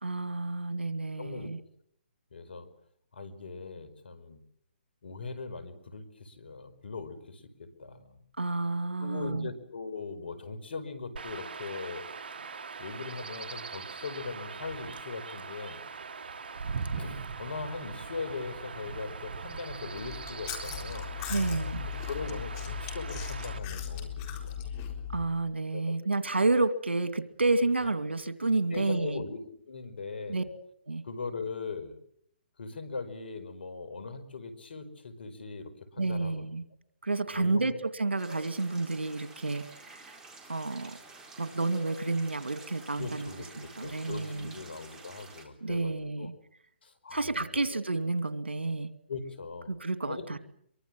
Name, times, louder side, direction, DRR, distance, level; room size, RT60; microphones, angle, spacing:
voice 1, 0.0-1.6 8.4-9.5 21.3-21.8 25.1-29.2 30.3-30.4 30.9-31.0 36.0-36.6 37.0-40.1 40.5-41.0 41.4-43.3 43.6-44.6 45.6-46.3 47.1-48.9 49.7-50.4, right 3 dB, 90° right, 11 dB, 2.3 m, -30 dB
voice 2, 1.2-1.5 2.3-2.7 3.1-4.4 5.0-8.2 9.0-12.0 12.8-15.8 17.0-21.1 21.7-24.6 25.7-26.0 27.8-27.9 28.7-29.4 29.7-30.4 31.0-32.0 32.6-36.4 37.3-37.7 43.0-46.3 46.8-47.8 49.1-49.8 50.1-50.4, left 4 dB, 70° left, 11 dB, 5.1 m, -40 dB
Chirp tweet / Wind / Stream, 11.2-23.6, right 5 dB, 65° right, 1.8 m, -41 dB
Chewing mastication, 20.0-25.3, left 8 dB, 30° left, 4.1 m, -38 dB
sound 1, 38.2-45.5, right 3 dB, 10° right, 4.1 m, -50 dB
24.0 x 24.0 x 7.7 m, 0.68 s
hypercardioid pair, 140°, 6 cm